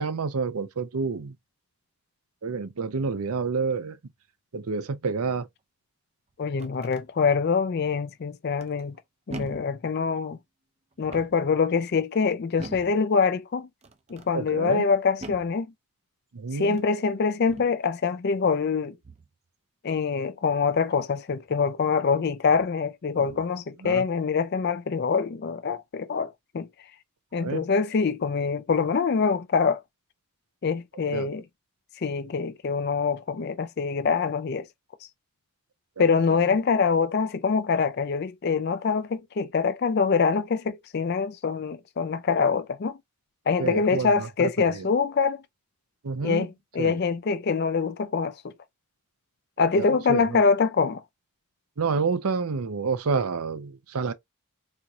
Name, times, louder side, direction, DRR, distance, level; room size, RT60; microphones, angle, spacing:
voice 1, 0.0-1.3 2.4-4.0 4.5-5.5 14.3-14.8 16.3-16.8 23.8-24.0 27.4-27.7 31.1-31.3 36.0-36.1 43.6-44.9 46.0-46.5 46.8-47.0 49.8-50.4 51.8-54.1, right 5 dB, 80° right, 0.6 m, -29 dB
sound 1, 6.3-7.1 8.6-9.0 9.3-9.8 10.9-11.5 12.6-13.0 13.8-14.3 15.2-15.6 16.5-16.9 17.5-17.8 19.0-19.4 21.5-21.6 22.4-22.8 23.1-23.6, right 2 dB, 30° right, 0.5 m, -43 dB
voice 2, 6.4-9.0 9.3-10.4 11.0-13.7 14.1-15.7 16.5-19.0 19.8-26.7 27.3-29.8 30.6-31.4 32.0-34.7 36.0-43.0 43.5-45.4 46.2-48.5 49.6-51.0, left 5 dB, 45° left, 0.4 m, -25 dB
4.3 x 2.7 x 2.4 m
head